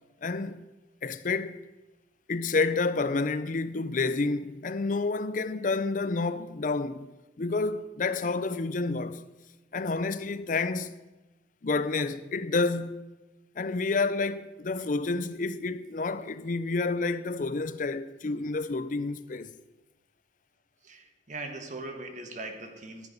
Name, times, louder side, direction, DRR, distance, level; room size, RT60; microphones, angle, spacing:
voice 1, 0.2-0.6 1.0-1.6 2.3-7.1 7.4-9.2 9.7-11.0 11.6-13.0 13.6-19.5, left 3 dB, 45° left, 0.5 m, -29 dB
voice 2, 20.8-23.1, right 2 dB, 40° right, 1.2 m, -40 dB
13.5 x 8.1 x 5.3 m
head